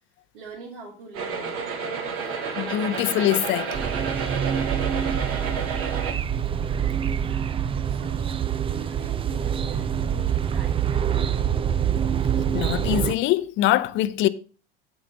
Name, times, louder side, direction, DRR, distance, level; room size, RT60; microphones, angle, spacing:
voice 1, 0.3-1.6 7.0-11.5, right 3 dB, 70° right, 3.2 m, -43 dB
sound 1, 1.1-6.1, right 5 dB, 50° right, 2.1 m, -30 dB
voice 2, 2.6-3.8 12.5-14.3, left 14 dB, 40° left, 0.8 m, -23 dB
sound 2, 3.7-13.1, right 9 dB, 20° right, 0.5 m, -25 dB
8.3 x 8.3 x 4.1 m
figure-of-eight pair, 80°, 30 cm